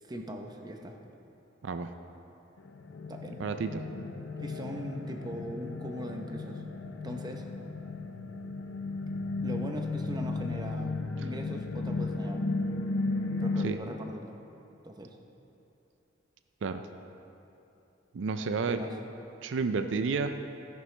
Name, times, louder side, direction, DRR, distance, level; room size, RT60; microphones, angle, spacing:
voice 1, 0.0-1.0 3.1-3.4 4.4-6.6 7.0-7.5 9.4-10.9 11.2-12.5 13.4-14.4 14.8-15.2 18.7-19.0, equal, 20° right, 3 dB, 0.7 m, -40 dB
sound 1, 2.6-13.7, left 3 dB, 85° left, 0.7 m, -34 dB
voice 2, 3.4-3.8 13.6-13.8 16.6-16.8 18.1-18.8 19.4-20.3, right 4 dB, 70° right, 8 dB, 0.4 m, -30 dB
13.0 x 10.5 x 3.3 m, 2.9 s
head